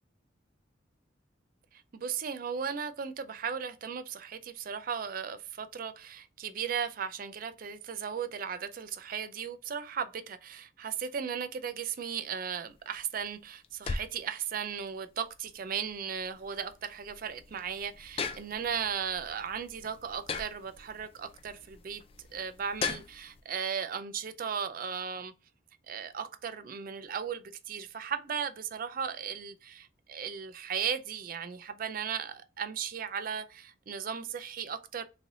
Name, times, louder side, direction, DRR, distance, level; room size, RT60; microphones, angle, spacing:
voice 1, 1.7-22.0 22.3-25.3 25.9-35.0, right 7 dB, 45° right, 0.4 m, -36 dB
sound 1, 12.7-23.4, left 5 dB, 30° left, 0.3 m, -41 dB
3.8 x 3.2 x 2.6 m
head